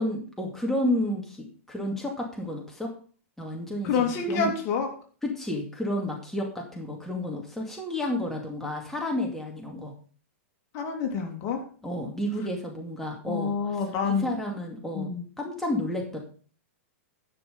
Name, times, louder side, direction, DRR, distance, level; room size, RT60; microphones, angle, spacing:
voice 1, 0.0-2.9 3.4-4.5 5.2-9.9 11.8-13.8 14.0-15.1 15.4-16.2, left 1 dB, 5° left, -1 dB, 2.4 m, -31 dB
voice 2, 3.8-4.9 10.7-11.6 13.3-14.3 14.9-15.2, left 5 dB, 40° left, 3 dB, 2.8 m, -27 dB
11.5 x 6.3 x 5.3 m, 0.42 s
hypercardioid pair, 120°, 7 cm